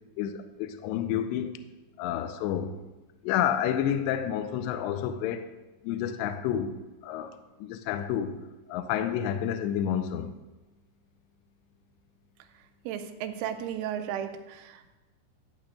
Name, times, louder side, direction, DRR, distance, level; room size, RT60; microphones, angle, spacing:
voice 1, 0.2-1.6 2.0-2.8 3.2-5.5 5.8-6.7 7.0-8.4 8.7-10.3, left 9 dB, 85° left, 2.5 m, -29 dB
voice 2, 12.9-15.0, right 9 dB, 85° right, 3.0 m, -35 dB
12.0 x 8.4 x 2.5 m
omnidirectional pair, 5.5 m